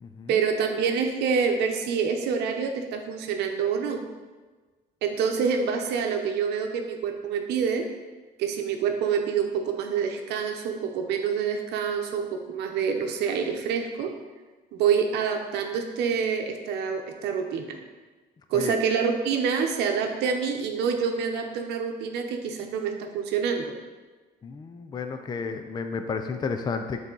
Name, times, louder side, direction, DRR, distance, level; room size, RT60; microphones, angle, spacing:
voice 1, 0.3-4.0 5.0-7.8 8.4-14.1 14.7-17.8 18.5-23.7, right 6 dB, 80° right, 4 dB, 0.8 m, -27 dB
voice 2, 24.4-27.0, left 5 dB, 25° left, 7 dB, 0.4 m, -32 dB
7.2 x 4.1 x 3.8 m, 1.3 s
cardioid pair, 110°, 17 cm